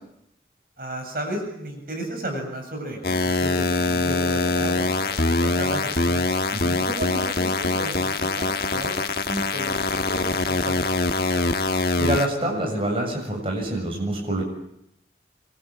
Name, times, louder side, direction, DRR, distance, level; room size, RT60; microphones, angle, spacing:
voice 1, 0.8-6.4 6.9-9.0 9.2-11.5, right 1 dB, 55° right, 3 dB, 7.4 m, -34 dB
sound 1, 3.0-12.3, left 2 dB, 60° left, 1.5 m, -23 dB
voice 2, 12.0-14.4, right 1 dB, 30° right, 0 dB, 7.6 m, -26 dB
26.0 x 25.0 x 8.7 m, 0.78 s
head